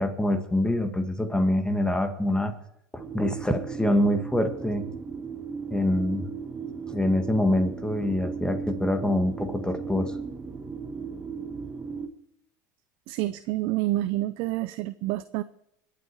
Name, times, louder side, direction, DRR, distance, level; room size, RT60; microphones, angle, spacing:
voice 1, 0.0-2.5 2.9-4.8 5.7-6.3 6.9-10.1, left 1 dB, 10° left, 7 dB, 1.8 m, -25 dB
sound 1, 3.0-12.1, right 5 dB, 20° right, 1.6 m, -36 dB
voice 2, 13.1-15.4, right 16 dB, 60° right, 12 dB, 0.7 m, -28 dB
21.5 x 8.5 x 4.7 m, 0.76 s
hypercardioid pair, 95°, 10 cm